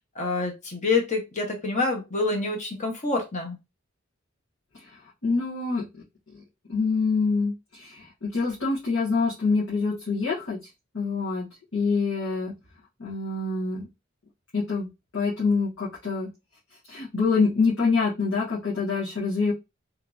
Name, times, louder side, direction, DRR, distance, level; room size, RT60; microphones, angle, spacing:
voice 1, 0.1-3.6, left 3 dB, 35° left, 2 dB, 0.8 m, -27 dB
voice 2, 4.7-5.8 6.3-6.4 6.7-11.5 11.7-12.5 13.0-13.8 14.5-16.3 16.9-19.5, left 4 dB, 85° left, -8 dB, 1.2 m, -26 dB
2.9 x 2.6 x 2.3 m, 0.25 s
head